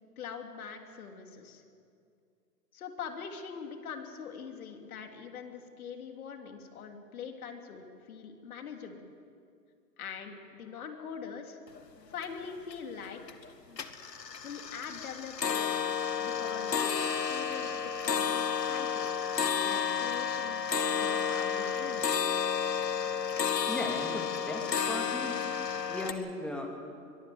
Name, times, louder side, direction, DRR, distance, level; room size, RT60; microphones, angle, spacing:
voice 1, 0.2-1.6 2.7-9.0 10.0-11.6 12.1-13.4 14.4-15.8 16.2-19.1 19.6-20.7 21.0-22.3, left 6 dB, 60° left, 4 dB, 3.2 m, -43 dB
sound 1, 11.8-11.9 12.1-12.7 13.1-13.5 13.7-26.1, left 7 dB, 85° left, 1.8 m, -31 dB
voice 2, 23.6-25.5 25.8-26.7, left 1 dB, ahead, 1 dB, 2.7 m, -37 dB
23.0 x 21.0 x 7.8 m, 2.4 s
hypercardioid pair, 130°, 48 cm